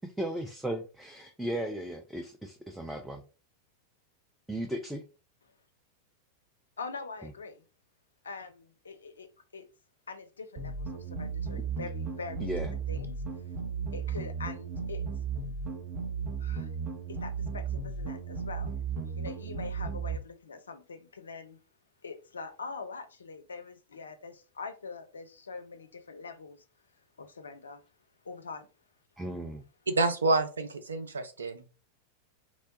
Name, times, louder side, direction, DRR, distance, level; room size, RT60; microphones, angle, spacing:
voice 1, 0.0-3.2 4.5-5.0 12.4-12.7 29.2-29.6, right 1 dB, 5° right, 0.4 m, -36 dB
voice 2, 6.8-7.6 8.2-9.3 9.5-9.6 10.1-12.5 12.9-13.2 13.9-15.0 16.4-16.7 17.1-18.7 19.2-21.6 22.0-26.6 27.2-27.8 28.2-28.7, left 4 dB, 70° left, 0.4 m, -43 dB
sound 1, 10.6-20.2, right 5 dB, 35° right, 0.8 m, -35 dB
voice 3, 29.9-31.7, right 2 dB, 75° right, 0.4 m, -28 dB
3.0 x 2.2 x 2.6 m
figure-of-eight pair, 90°, 0 cm